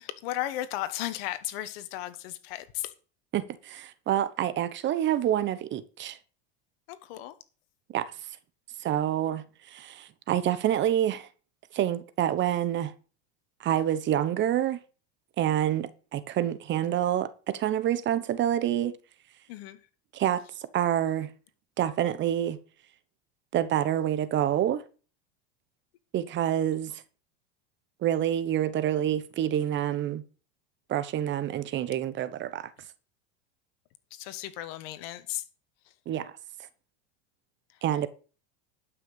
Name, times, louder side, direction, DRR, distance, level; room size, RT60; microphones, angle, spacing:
voice 1, 0.0-2.9 6.9-7.3 19.5-19.8 34.1-35.5 35.8-35.9 37.7-37.8, left 14 dB, 65° left, 1.5 m, -35 dB
voice 2, 3.3-6.2 7.9-8.1 8.8-11.3 11.7-12.9 13.6-14.8 15.4-19.0 20.1-21.3 21.8-22.6 23.5-24.8 26.1-27.0 28.0-30.2 30.9-32.7 36.1-36.4 37.8-38.1, right 11 dB, 35° right, 1.0 m, -27 dB
12.0 x 6.1 x 6.9 m
supercardioid pair, 125°, 32 cm